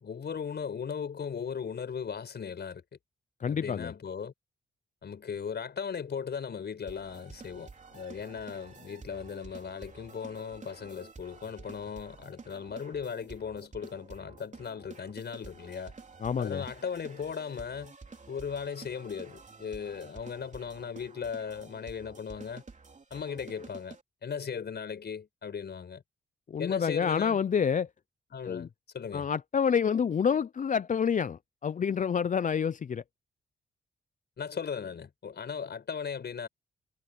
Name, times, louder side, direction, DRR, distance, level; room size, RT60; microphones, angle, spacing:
voice 1, 0.0-2.8 3.5-4.3 5.0-15.9 16.4-17.9 18.3-22.6 23.1-24.0 24.2-26.0 26.6-27.4 28.3-29.3 34.4-36.5, left 6 dB, 60° left, 5.4 m, -37 dB
voice 2, 3.4-3.9 16.2-16.6 26.5-27.9 28.4-28.7 29.1-33.0, left 7 dB, 40° left, 0.5 m, -28 dB
sound 1, 6.9-24.0, right 4 dB, 40° right, 3.3 m, -50 dB
cardioid pair, 60°, 19 cm